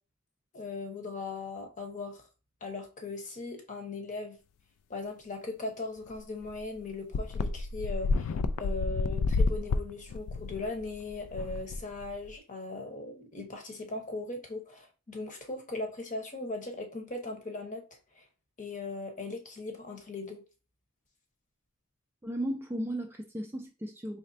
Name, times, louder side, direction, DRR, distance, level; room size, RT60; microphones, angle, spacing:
voice 1, 0.5-2.2 2.6-4.4 4.9-8.3 8.6-17.8 18.2-18.3 18.6-20.4, left 3 dB, 35° left, 0.8 m, -39 dB
sound 1, 6.1-6.2 6.5-6.6 7.1-12.3, left 3 dB, 80° left, 0.3 m, -30 dB
voice 2, 22.2-24.2, right 1 dB, 10° right, 0.3 m, -35 dB
4.1 x 3.1 x 2.6 m
head